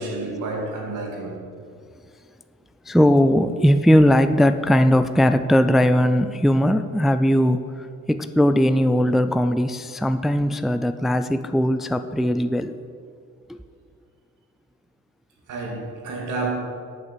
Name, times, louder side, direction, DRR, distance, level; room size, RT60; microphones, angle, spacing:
voice 1, 0.0-1.6 15.5-16.5, right 3 dB, 85° right, 2.3 m, -30 dB
voice 2, 2.9-12.7 13.5-13.6, equal, ahead, 0.3 m, -19 dB
8.1 x 6.8 x 6.8 m
cardioid pair, 90°, 30 cm